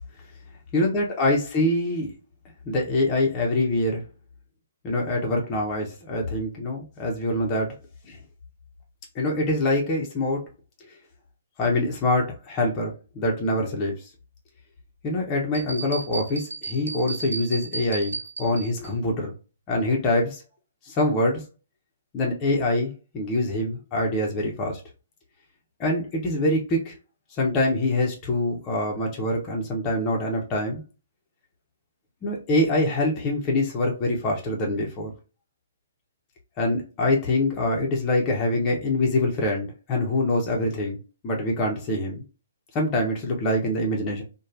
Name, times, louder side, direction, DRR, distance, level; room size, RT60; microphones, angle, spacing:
voice 1, 0.7-2.1 2.7-4.0 4.8-7.7 8.0-8.2 9.1-10.4 11.6-14.1 15.0-19.3 19.7-20.4 20.8-21.4 22.1-24.8 25.8-26.9 27.4-30.8 32.2-35.1 36.6-41.0 41.2-42.2 42.7-44.2, left 1 dB, 25° left, -2 dB, 0.7 m, -25 dB
sound 1, 15.5-18.9, right 4 dB, 75° right, 0.4 m, -34 dB
3.0 x 2.2 x 2.4 m, 0.32 s
figure-of-eight pair, 125°, 0 cm